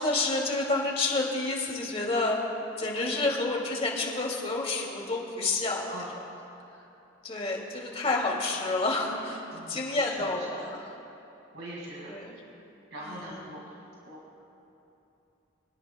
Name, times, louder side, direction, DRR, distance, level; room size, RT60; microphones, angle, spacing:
voice 1, 0.0-2.4 2.8-5.9 7.2-10.8 12.1-12.3 13.0-13.4, left 2 dB, 30° left, -1 dB, 2.4 m, -29 dB
voice 2, 9.5-10.7 11.5-12.2 12.9-13.6 14.0-14.4, right 1 dB, 70° right, -5 dB, 2.2 m, -42 dB
25.5 x 18.0 x 2.3 m, 2.9 s
head